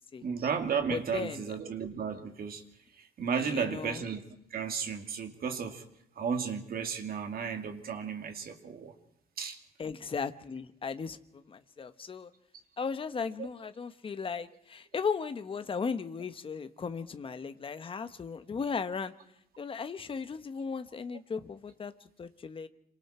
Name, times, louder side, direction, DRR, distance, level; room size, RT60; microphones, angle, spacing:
voice 1, 0.2-2.6 3.2-4.2 4.5-5.8 6.2-8.9 9.4-9.6 13.4-13.5, right 6 dB, 55° right, 5 dB, 2.6 m, -33 dB
voice 2, 0.9-1.4 3.4-4.0 9.8-12.3 12.8-19.1 19.6-21.9 22.2-22.7, left 5 dB, 30° left, 10 dB, 1.1 m, -36 dB
27.0 x 24.5 x 4.4 m, 0.73 s
wide cardioid pair, 170°, 18 cm